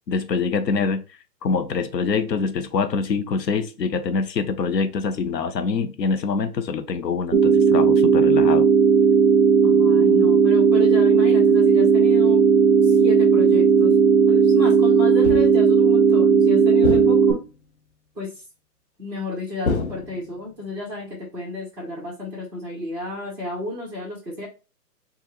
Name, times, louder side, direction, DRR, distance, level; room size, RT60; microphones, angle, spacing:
voice 1, 0.1-1.0 1.4-8.7, left 5 dB, 80° left, 0.9 m, -25 dB
sound 1, 7.3-17.3, right 6 dB, 50° right, 0.8 m, -16 dB
voice 2, 9.6-12.4 12.8-13.9 14.3-17.4 18.1-18.3 19.0-24.5, left 1 dB, 5° right, 1.0 m, -32 dB
sound 2, 15.2-15.7 16.8-17.6 19.6-20.6, left 3 dB, 45° left, 0.5 m, -28 dB
4.8 x 2.4 x 3.0 m
hypercardioid pair, 160°, 49 cm